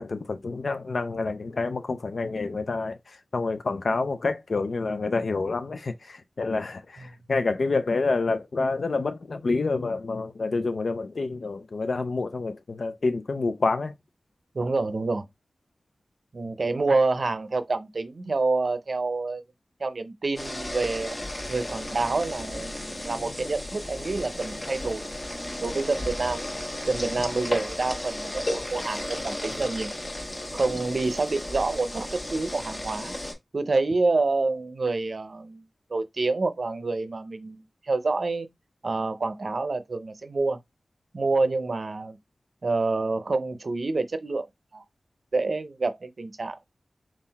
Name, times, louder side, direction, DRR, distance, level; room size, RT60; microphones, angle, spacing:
voice 1, 0.0-13.9, left 3 dB, 70° left, 0.4 m, -28 dB
voice 2, 14.5-15.2 16.3-19.4 19.8-21.2 21.5-25.1 25.6-26.5 26.9-29.9 30.5-33.1 33.5-35.6 35.9-38.5 38.8-40.6 41.1-42.2 42.6-44.5 44.7-44.8 45.3-46.7, right 3 dB, 65° right, 0.6 m, -27 dB
sound 1, 20.4-33.3, left 1 dB, 35° left, 1.1 m, -34 dB
3.8 x 2.4 x 4.1 m
wide cardioid pair, 60°, 0 cm